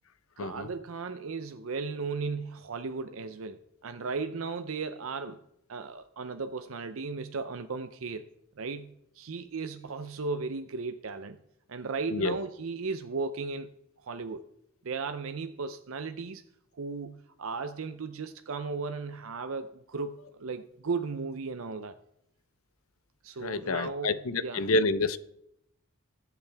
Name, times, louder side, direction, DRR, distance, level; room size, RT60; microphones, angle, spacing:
voice 1, 0.4-5.4 5.7-8.3 8.6-11.4 11.7-13.7 14.0-14.5 14.8-16.4 16.7-22.0 23.2-24.7, right 4 dB, 75° right, 0.6 m, -36 dB
voice 2, 23.4-25.2, left 2 dB, 90° left, 0.7 m, -28 dB
21.5 x 8.2 x 3.5 m
head